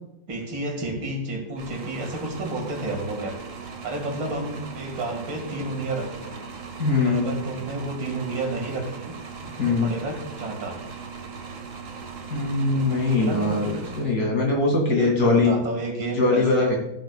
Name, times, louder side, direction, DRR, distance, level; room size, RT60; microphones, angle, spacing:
voice 1, 0.3-3.4 3.8-6.4 7.0-9.1 9.5-10.8 12.7-13.7 14.9-16.7, right 2 dB, 80° right, 2 dB, 2.8 m, -31 dB
sound 1, 1.6-14.6, right 5 dB, 50° right, 1.2 m, -39 dB
voice 2, 6.8-7.3 9.6-9.9 12.3-15.5 16.2-16.8, left 3 dB, 50° left, -1 dB, 2.8 m, -21 dB
14.0 x 7.9 x 2.3 m, 0.83 s
omnidirectional pair, 2.1 m